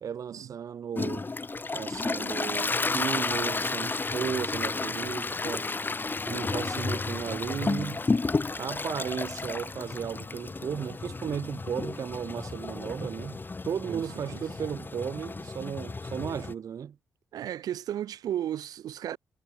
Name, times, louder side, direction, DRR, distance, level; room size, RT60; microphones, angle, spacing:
voice 1, 0.0-1.2 1.7-5.7 6.3-8.0 8.6-17.0, right 8 dB, 60° right, 0.6 m, -35 dB
Toilet flush, 0.9-16.5, left 3 dB, 30° left, 1.6 m, -32 dB
voice 2, 17.3-19.2, right 11 dB, 75° right, 1.5 m, -34 dB
supercardioid pair, 50°, 7 cm